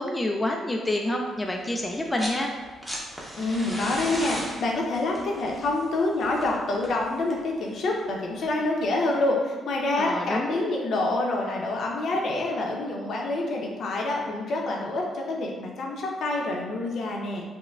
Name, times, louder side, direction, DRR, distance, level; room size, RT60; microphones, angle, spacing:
voice 1, 0.0-2.5 10.0-10.6, left 1 dB, 15° left, 1 dB, 0.3 m, -28 dB
sound 1, 1.9-2.4 2.7-7.5 8.8-8.9, equal, ahead, 0.7 m, -36 dB
voice 2, 3.4-17.4, left 2 dB, 65° left, -1 dB, 0.6 m, -27 dB
5.4 x 2.1 x 2.3 m, 1.4 s
cardioid pair, 90°, 0 cm